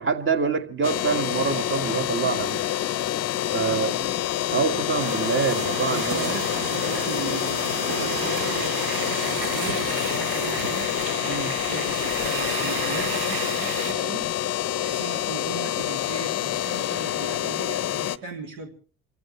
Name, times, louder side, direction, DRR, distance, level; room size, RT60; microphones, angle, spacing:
voice 1, 0.0-2.6 3.5-3.9 4.5-6.3 11.2-11.6, right 5 dB, 30° right, 9 dB, 1.7 m, -26 dB
sound 1, 0.8-18.2, left 12 dB, 35° left, 0.8 m, -27 dB
voice 2, 3.5-4.2 5.8-10.9 11.3-14.3 14.8-18.7, right 4 dB, 70° right, 3 dB, 3.2 m, -38 dB
sound 2, 5.0-13.9, right 5 dB, 50° right, 2.2 m, -32 dB
28.0 x 15.0 x 3.2 m, 0.40 s
figure-of-eight pair, 55°, 42 cm